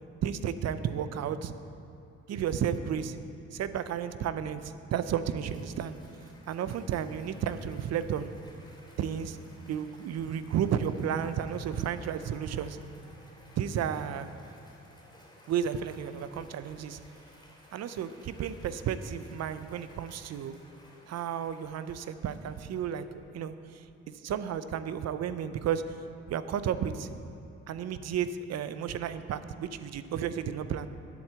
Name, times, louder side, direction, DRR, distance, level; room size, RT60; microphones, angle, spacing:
voice 1, 0.2-1.5 2.3-3.2 3.5-6.0 6.5-8.3 9.0-9.4 9.7-12.8 13.6-14.3 15.5-17.0 17.7-20.5 21.1-23.0 23.3-23.8 24.2-25.8 26.3-27.1 27.7-30.9, right 8 dB, 60° right, 12 dB, 0.5 m, -32 dB
Cheering / Applause, 4.8-23.3, left 1 dB, 15° left, 2.6 m, -58 dB
11.0 x 4.5 x 8.0 m, 2.6 s
cardioid pair, 90°, 30 cm